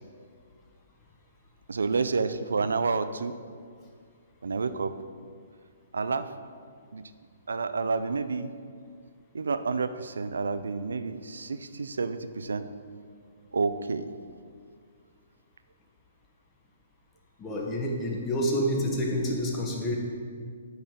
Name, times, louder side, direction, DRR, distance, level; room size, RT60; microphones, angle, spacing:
voice 1, 1.7-3.3 4.4-4.9 5.9-6.3 6.9-7.0 7.5-8.5 9.3-12.7 13.5-14.1, right 4 dB, 75° right, 12 dB, 0.4 m, -29 dB
voice 2, 17.4-20.0, equal, 20° left, -1 dB, 1.4 m, -28 dB
8.8 x 4.0 x 6.6 m, 2.1 s
figure-of-eight pair, 130°, 0 cm